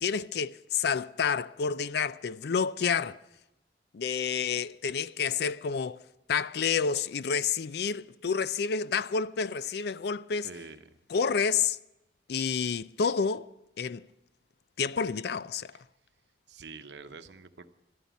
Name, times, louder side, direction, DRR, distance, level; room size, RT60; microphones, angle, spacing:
voice 1, 0.0-3.2 3.9-6.0 6.3-10.5 11.1-11.8 12.3-13.5 13.8-14.1 14.8-15.7, left 6 dB, 60° left, 0.4 m, -29 dB
voice 2, 10.4-11.0 15.7-15.8 16.5-17.7, right 4 dB, 70° right, 0.9 m, -46 dB
12.5 x 11.5 x 8.1 m
head